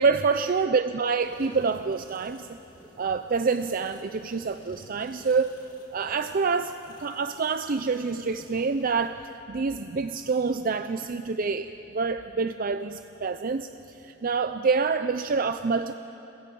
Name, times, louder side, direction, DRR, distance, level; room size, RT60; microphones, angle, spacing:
voice 1, 0.0-2.6 3.0-5.5 5.9-6.7 7.0-9.2 9.5-16.0, right 4 dB, 45° right, 10 dB, 0.5 m, -27 dB
sound 1, 1.1-9.1, left 1 dB, 25° left, 2.9 m, -54 dB
30.0 x 22.5 x 5.4 m, 2.9 s
head